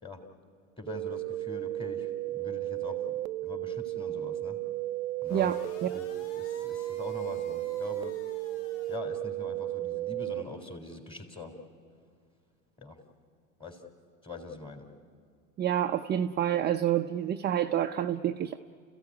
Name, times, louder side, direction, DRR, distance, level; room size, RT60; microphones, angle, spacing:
voice 1, 0.8-4.6 5.2-5.5 5.8-6.1 6.4-8.1 8.9-11.5 12.8-13.0 13.6-13.8 14.2-14.9, left 3 dB, 15° left, 4 dB, 3.7 m, -43 dB
sound 1, 0.9-10.4, right 15 dB, 90° right, 0.6 m, -34 dB
sound 2, 5.2-9.0, left 3 dB, 70° left, 2.7 m, -52 dB
voice 2, 15.6-18.6, right 10 dB, 25° right, 6 dB, 0.6 m, -28 dB
29.5 x 15.5 x 9.7 m, 2.2 s
hypercardioid pair, 105°, 41 cm